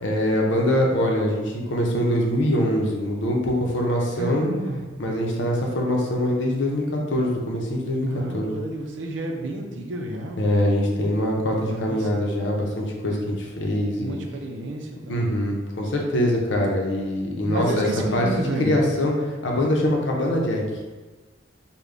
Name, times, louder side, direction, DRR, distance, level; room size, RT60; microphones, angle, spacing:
voice 1, 0.0-4.5 5.0-8.5 10.4-14.2 15.1-18.3 18.6-20.6, left 1 dB, 75° left, -1 dB, 0.7 m, -23 dB
voice 2, 4.1-4.8 8.1-10.7 11.6-12.1 14.0-15.3 17.5-18.8, right 1 dB, 80° right, 2 dB, 0.5 m, -31 dB
3.7 x 2.2 x 3.3 m, 1.3 s
head